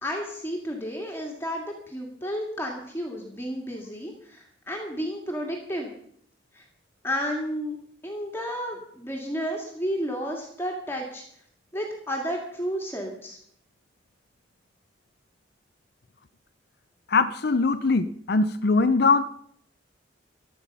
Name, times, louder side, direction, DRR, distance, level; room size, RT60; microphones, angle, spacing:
voice 1, 0.0-6.0 6.5-6.6 7.0-7.8 8.0-11.2 11.7-13.4, equal, 15° left, 0 dB, 2.1 m, -32 dB
voice 2, 17.1-19.2, left 3 dB, 55° left, 9 dB, 0.6 m, -21 dB
15.5 x 12.0 x 5.4 m, 0.65 s
head